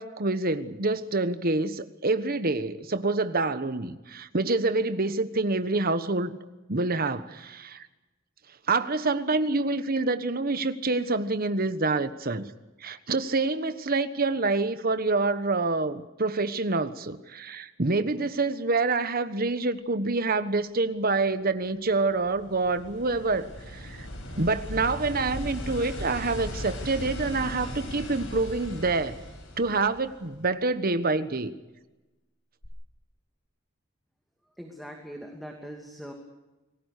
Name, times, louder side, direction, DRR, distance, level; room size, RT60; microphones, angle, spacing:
voice 1, 0.0-6.4 6.7-7.9 8.7-12.5 12.8-24.1 24.4-29.2 29.6-31.5, right 3 dB, 45° right, 11 dB, 1.3 m, -27 dB
sound 1, 22.0-30.5 32.6-32.7, left 1 dB, 65° left, 7.0 m, -38 dB
voice 2, 34.5-36.1, equal, ahead, 2 dB, 2.6 m, -41 dB
29.0 x 20.0 x 6.7 m, 1.1 s
head